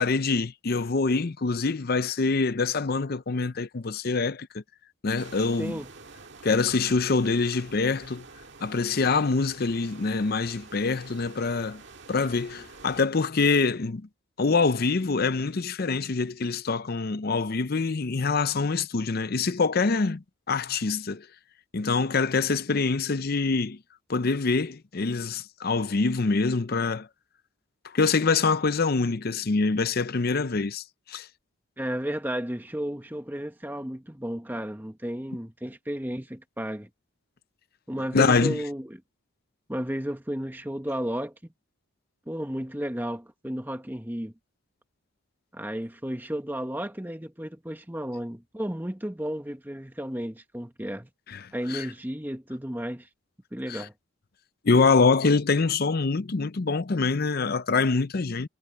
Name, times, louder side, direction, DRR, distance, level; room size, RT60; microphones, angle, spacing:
voice 1, 0.0-4.6 5.0-5.8 6.4-8.2 8.6-11.8 12.1-14.1 14.4-21.3 21.7-23.8 24.1-27.1 27.9-31.3 38.1-38.6 51.3-51.9 53.7-53.9 54.6-58.5, left 4 dB, 45° left, 0.6 m, -25 dB
sound 1, 5.2-13.1, right 4 dB, 55° right, 1.8 m, -48 dB
voice 2, 31.8-36.9 37.9-39.0 39.7-41.3 42.3-44.3 45.5-51.1 51.5-53.1 53.5-53.9, equal, 10° right, 1.2 m, -33 dB
head